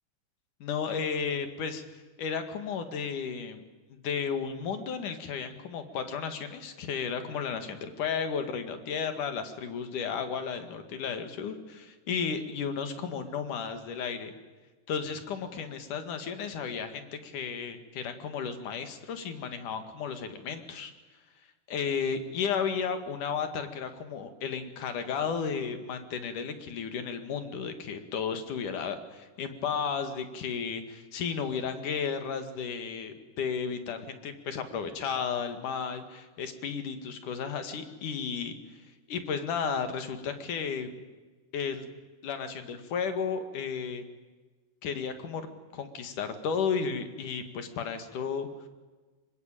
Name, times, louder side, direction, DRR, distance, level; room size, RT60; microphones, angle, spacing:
voice 1, 0.6-1.8 2.2-3.6 3.9-14.3 14.9-20.9 21.7-38.6 39.1-41.0 41.5-41.9 42.2-44.0 44.8-45.5 45.7-48.5, left 6 dB, 70° left, 8 dB, 3.5 m, -33 dB
26.0 x 23.5 x 9.1 m, 1.3 s
omnidirectional pair, 3.7 m